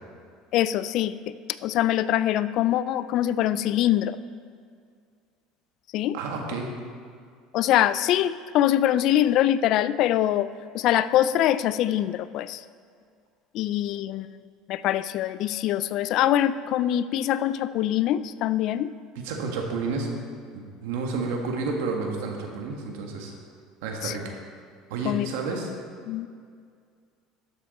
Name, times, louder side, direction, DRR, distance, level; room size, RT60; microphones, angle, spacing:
voice 1, 0.5-1.4 1.6-4.2 5.9-6.2 7.5-10.5 10.7-12.6 13.5-14.3 14.7-18.9 24.0-24.2 25.1-25.3 26.1-26.3, left 12 dB, 55° left, 15 dB, 0.3 m, -23 dB
voice 2, 6.1-6.7 19.2-20.1 20.5-23.3 23.8-24.4 24.9-25.7, right 4 dB, 85° right, 1 dB, 1.7 m, -30 dB
12.5 x 7.1 x 4.2 m, 2.2 s
cardioid pair, 135°, 0 cm